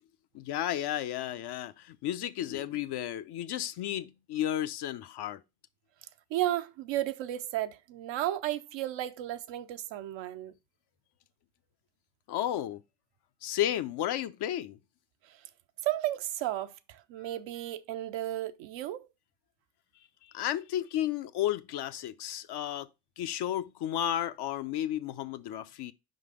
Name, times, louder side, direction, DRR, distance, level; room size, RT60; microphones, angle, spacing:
voice 1, 0.3-5.4 12.3-12.8 13.4-14.8 20.2-22.9 23.2-25.9, left 12 dB, 60° left, 0.7 m, -33 dB
voice 2, 6.3-10.5 15.8-19.1, right 14 dB, 70° right, 0.7 m, -33 dB
5.1 x 4.0 x 4.9 m
supercardioid pair, 60°, 46 cm